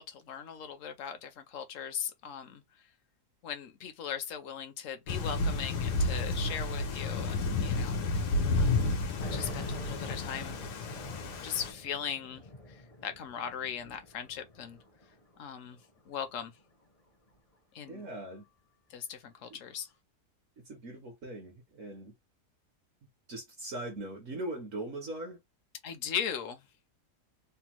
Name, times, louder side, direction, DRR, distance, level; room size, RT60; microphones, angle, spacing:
voice 1, 0.0-2.6 3.4-8.0 8.5-10.6 11.4-14.8 15.4-15.8 16.1-16.5 17.7-18.0 18.9-19.9 25.8-26.7, left 8 dB, 65° left, 0.9 m, -39 dB
Thunder / Rain, 5.1-11.7, left 3 dB, 85° left, 1.3 m, -31 dB
sound 1, 9.2-15.2 15.6-16.6, left 2 dB, 35° left, 0.5 m, -45 dB
voice 2, 17.9-18.4 19.5-19.6 20.6-22.1 23.3-25.4, right 1 dB, 60° right, 1.1 m, -40 dB
3.4 x 2.0 x 2.9 m
omnidirectional pair, 1.7 m